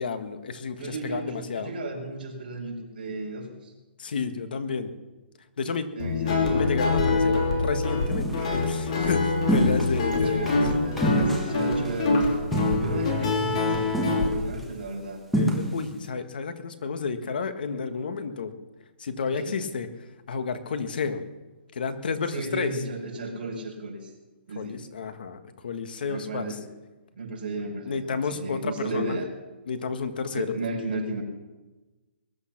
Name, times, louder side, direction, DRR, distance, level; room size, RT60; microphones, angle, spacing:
voice 1, 0.0-1.7 4.0-4.9 5.6-5.9 6.3-10.6 13.2-13.3 15.3-18.5 19.0-19.9 20.3-21.2 21.7-22.7 24.5-26.6 27.8-29.2 29.7-30.5, left 5 dB, 50° left, 10 dB, 1.6 m, -31 dB
voice 2, 0.8-3.7 5.9-6.6 10.1-12.3 12.8-15.2 19.3-19.6 22.3-24.1 24.5-24.8 26.1-26.6 27.2-29.3 30.3-31.2, right 2 dB, 50° right, 0 dB, 5.3 m, -34 dB
Guitar, 6.0-14.3, left 3 dB, 35° left, 3.3 m, -25 dB
sound 1, 8.1-8.4 9.5-10.0 10.5-10.6 11.0-12.0 12.5-13.2 13.5-13.6 13.9-14.6 15.3-15.9, right 1 dB, ahead, 1.2 m, -27 dB
21.5 x 11.0 x 6.0 m, 1.2 s
hypercardioid pair, 175°, 6 cm